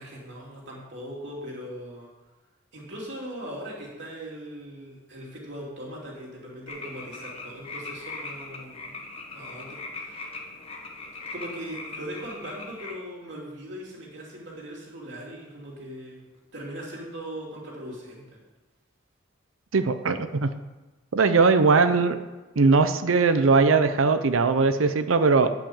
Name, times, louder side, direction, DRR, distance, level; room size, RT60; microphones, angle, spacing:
voice 1, 0.0-2.1 2.7-9.0 9.3-10.4 11.3-16.2 16.5-18.2, equal, 60° right, -3 dB, 3.2 m, -39 dB
sound 1, 6.7-12.9, left 3 dB, 30° left, 1.1 m, -40 dB
voice 2, 19.7-20.5 21.1-22.2 22.6-25.5, right 4 dB, 85° right, 10 dB, 0.7 m, -20 dB
10.0 x 6.0 x 7.0 m, 1.2 s
head